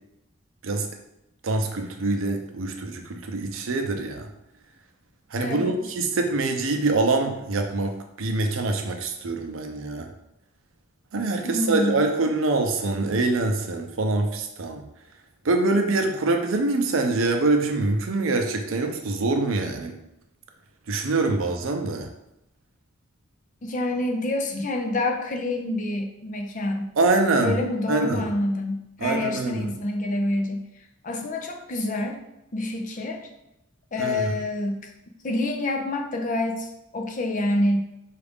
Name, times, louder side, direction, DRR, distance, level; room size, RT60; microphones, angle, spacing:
voice 1, 1.4-4.3 5.3-10.1 11.1-14.8 15.4-20.0 20.9-22.1 27.0-27.5 27.9-28.3 29.0-29.7 34.0-34.4, right 2 dB, 80° right, 5 dB, 0.6 m, -24 dB
voice 2, 5.4-5.8 11.4-12.0 23.6-26.9 27.4-30.7 31.0-32.2 32.5-33.2 33.9-34.9 35.2-36.7 36.9-37.9, left 1 dB, 40° left, 3 dB, 0.5 m, -27 dB
4.8 x 2.5 x 3.5 m, 0.85 s
head